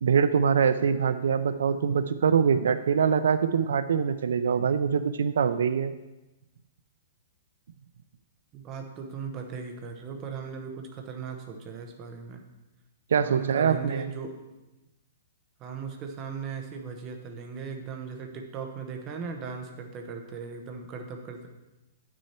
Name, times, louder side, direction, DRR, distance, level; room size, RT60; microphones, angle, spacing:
voice 1, 0.0-5.9 13.1-14.0, right 7 dB, 80° right, 12 dB, 0.4 m, -24 dB
voice 2, 8.5-12.4 13.2-14.4 15.6-21.5, right 5 dB, 20° right, 3 dB, 0.9 m, -38 dB
9.5 x 6.3 x 4.3 m, 1.0 s
hypercardioid pair, 170°, 0 cm